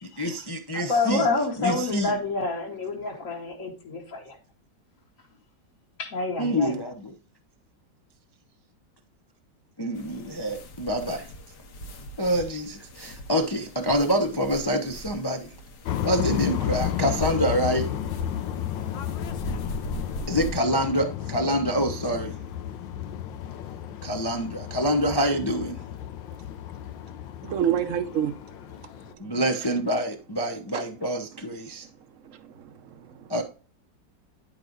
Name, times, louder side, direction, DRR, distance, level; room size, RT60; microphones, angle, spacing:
voice 1, 0.0-1.3 1.6-2.1 6.4-7.1 9.8-11.3 12.2-15.5 16.0-17.9 20.3-22.4 24.0-25.8 29.2-31.9 33.3-33.4, equal, 30° left, 0.4 m, -26 dB
voice 2, 0.7-4.4 6.0-6.8, left 3 dB, 45° left, 1.8 m, -28 dB
sound 1, 9.9-20.6, equal, 65° left, 1.6 m, -40 dB
sound 2, 15.9-29.1, left 10 dB, 80° left, 1.4 m, -33 dB
voice 3, 27.4-28.4 29.1-29.3 30.7-30.8 31.8-31.9 32.2-33.3, right 9 dB, 55° right, 1.0 m, -29 dB
10.5 x 4.8 x 3.9 m
omnidirectional pair, 2.0 m